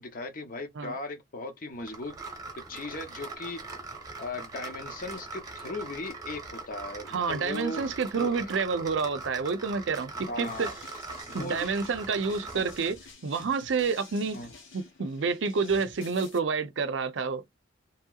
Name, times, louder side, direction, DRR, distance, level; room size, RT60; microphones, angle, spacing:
voice 1, 0.0-2.1 2.7-3.6 4.2-7.9 8.1-8.6 10.1-10.7 11.3-11.6 12.5-12.6 14.3-14.5, left 2 dB, 45° left, 0.7 m, -38 dB
sound 1, 1.9-13.0, right 3 dB, 20° right, 0.9 m, -42 dB
voice 2, 7.1-10.7 11.3-14.4 14.7-17.4, right 5 dB, 75° right, 0.5 m, -29 dB
sound 2, 10.5-16.4, left 4 dB, 80° left, 1.0 m, -50 dB
2.9 x 2.8 x 2.3 m
head